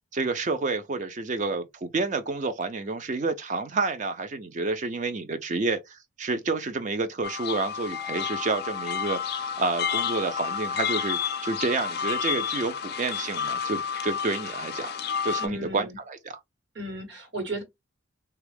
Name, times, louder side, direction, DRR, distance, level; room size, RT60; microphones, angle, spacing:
voice 1, 0.1-14.9 15.2-16.4, right 3 dB, 35° right, 0.4 m, -29 dB
sound 1, 7.2-15.5, left 7 dB, 50° left, 0.4 m, -30 dB
voice 2, 15.4-16.0 16.7-17.6, right 1 dB, 55° right, 1.2 m, -34 dB
3.4 x 2.3 x 3.3 m
head